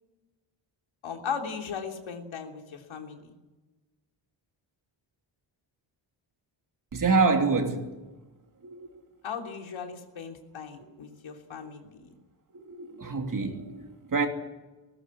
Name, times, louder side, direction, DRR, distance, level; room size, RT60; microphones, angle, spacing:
voice 1, 1.0-3.3 9.2-12.2, left 6 dB, 85° left, 3.4 m, -37 dB
voice 2, 6.9-8.0 8.6-9.0 10.8-10.9 12.5-14.3, right 4 dB, 45° right, 3.1 m, -27 dB
19.0 x 16.5 x 9.9 m
cardioid pair, 100°, 46 cm